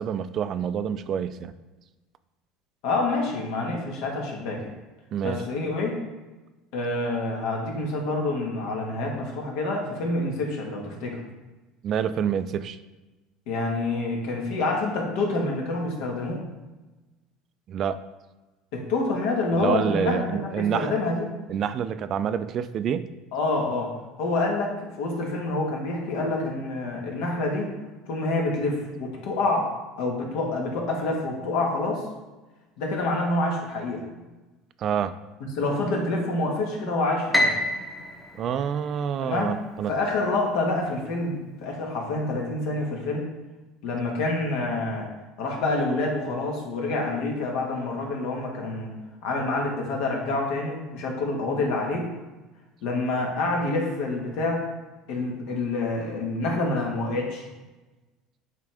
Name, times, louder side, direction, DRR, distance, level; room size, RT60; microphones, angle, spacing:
voice 1, 0.0-1.5 5.1-5.4 11.8-12.8 17.7-18.0 19.6-20.9 21.5-23.1 34.8-35.1 38.4-39.9, right 8 dB, 45° right, 12 dB, 0.3 m, -27 dB
voice 2, 2.8-4.7 5.2-6.0 6.7-11.2 13.5-16.5 18.7-21.4 23.3-23.9 24.2-27.7 28.1-29.7 30.0-32.0 32.8-34.1 35.6-37.6 39.2-39.6 39.9-43.3 43.8-45.1 45.4-48.9 49.2-52.1 52.8-54.6 55.1-57.5, left 2 dB, 75° left, 0 dB, 1.5 m, -27 dB
Piano, 37.3-39.6, left 1 dB, 5° left, 0.8 m, -27 dB
8.3 x 3.7 x 3.5 m, 1.1 s
supercardioid pair, 125°, 0 cm